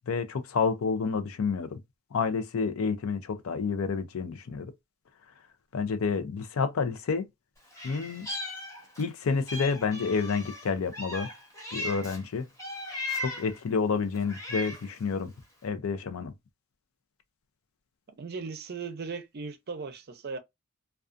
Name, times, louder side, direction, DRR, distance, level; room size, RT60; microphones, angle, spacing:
voice 1, 0.1-1.8 2.1-4.7 5.7-7.3 7.8-8.3 9.0-11.3 11.7-12.5 13.2-15.3 15.6-16.3, left 5 dB, 75° left, 0.4 m, -29 dB
Meow, 7.7-9.1 9.5-12.2 12.6-13.6 14.1-15.0, left 2 dB, 15° left, 0.9 m, -37 dB
voice 2, 18.2-20.4, right 4 dB, 50° right, 0.5 m, -37 dB
2.4 x 2.3 x 2.4 m
head